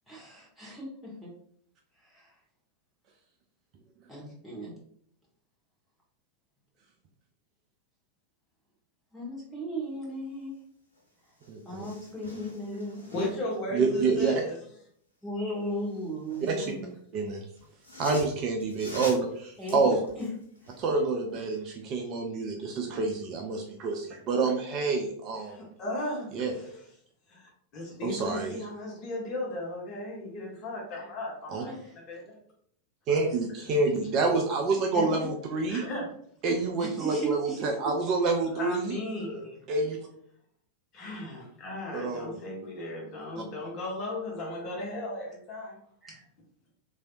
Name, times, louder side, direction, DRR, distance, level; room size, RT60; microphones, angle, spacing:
voice 1, 0.1-1.3 2.1-2.3 4.1-4.7 9.1-10.5 11.6-13.0 15.2-16.9 19.6-20.3 34.9-35.1 36.8-37.7 46.0-46.2, right 1 dB, ahead, -6 dB, 1.4 m, -36 dB
sound 1, 10.9-11.0 11.3-13.6 15.7-16.8 17.6-20.9 21.3-21.4, left 1 dB, 85° left, 1.1 m, -45 dB
voice 2, 11.5-11.9 13.7-14.3 16.4-16.7 17.1-17.4 18.0-20.0 20.8-25.5 26.3-26.5 28.0-28.6 31.5-31.6 33.1-35.8 36.4-39.0 39.7-40.0 41.9-42.4, right 3 dB, 35° right, 2 dB, 0.4 m, -28 dB
voice 3, 13.0-14.6 25.4-26.8 27.3-31.7 32.1-32.3 33.1-33.2 35.7-36.1 38.5-39.6 40.9-45.8, left 1 dB, 35° left, -3 dB, 1.1 m, -36 dB
3.2 x 2.6 x 2.5 m, 0.64 s
figure-of-eight pair, 90°, 0 cm